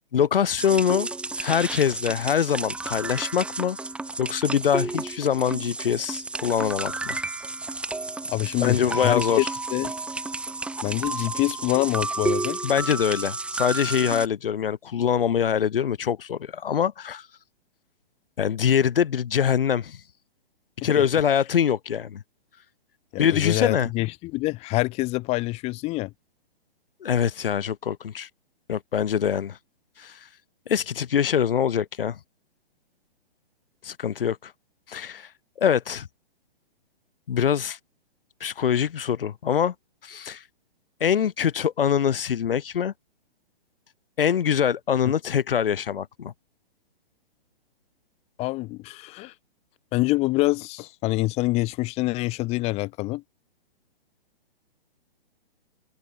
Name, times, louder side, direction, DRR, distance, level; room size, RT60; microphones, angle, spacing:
voice 1, 0.1-1.1 1.4-3.8 4.2-7.2 8.6-9.5 12.6-17.3 18.4-20.0 20.8-22.2 23.2-23.9 27.0-28.3 28.7-29.6 30.0-30.3 30.7-32.2 33.8-34.5 34.9-35.3 35.6-36.1 37.3-37.8 38.4-39.7 40.0-40.4 41.0-42.9 44.2-46.3, left 8 dB, 65° left, 4.6 m, -24 dB
sound 1, 0.6-14.3, right 3 dB, 5° right, 4.1 m, -31 dB
voice 2, 8.3-9.4 9.7-9.9 10.8-12.6 20.8-20.9 23.1-26.1 48.4-49.3 49.9-53.2, left 21 dB, 20° left, 6.3 m, -26 dB
hypercardioid pair, 165°, 30 cm